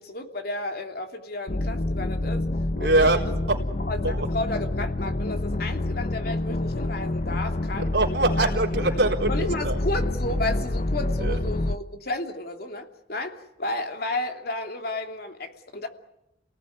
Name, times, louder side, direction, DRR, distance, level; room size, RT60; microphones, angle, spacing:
voice 1, 0.0-2.4 2.8-3.1 3.8-7.9 8.3-8.5 8.9-9.0 9.3-15.9, left 2 dB, 55° left, 5 dB, 2.9 m, -32 dB
sound 1, 1.5-11.8, left 2 dB, 40° left, 0.9 m, -27 dB
voice 2, 2.8-3.2 3.5-3.6 4.0-4.3 7.8-9.8 11.2-11.4, right 2 dB, 70° right, 0 dB, 4.2 m, -23 dB
30.0 x 18.5 x 9.5 m, 0.86 s
head